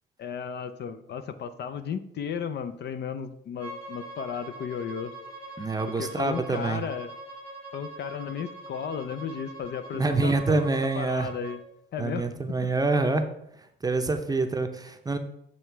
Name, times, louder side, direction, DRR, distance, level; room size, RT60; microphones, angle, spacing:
voice 1, 0.2-5.1 6.0-7.1 7.7-11.6 11.9-12.3, left 7 dB, 60° left, 11 dB, 0.5 m, -34 dB
Bowed string instrument, 3.6-11.6, right 2 dB, 80° left, 1.6 m, -43 dB
voice 2, 5.6-6.8 9.9-11.3 12.0-13.2 13.8-15.2, right 3 dB, 20° right, 7 dB, 0.6 m, -26 dB
7.8 x 3.1 x 4.6 m, 0.78 s
cardioid pair, 90°, 20 cm